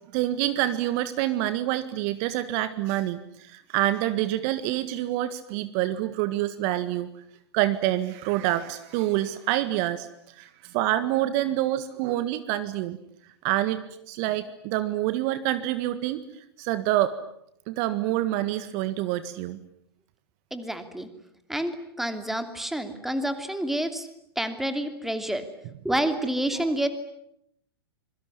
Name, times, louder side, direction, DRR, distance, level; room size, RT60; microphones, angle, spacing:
voice 1, 0.1-7.1 7.5-10.1 10.4-13.0 13.4-16.2 16.6-17.1 17.7-19.6 26.6-26.7, right 14 dB, 40° right, 12 dB, 1.7 m, -27 dB
voice 2, 20.5-21.1 21.5-24.1 24.4-25.5 25.8-26.9, right 1 dB, ahead, 8 dB, 2.8 m, -28 dB
26.0 x 23.0 x 9.8 m, 0.75 s
figure-of-eight pair, 105°, 13 cm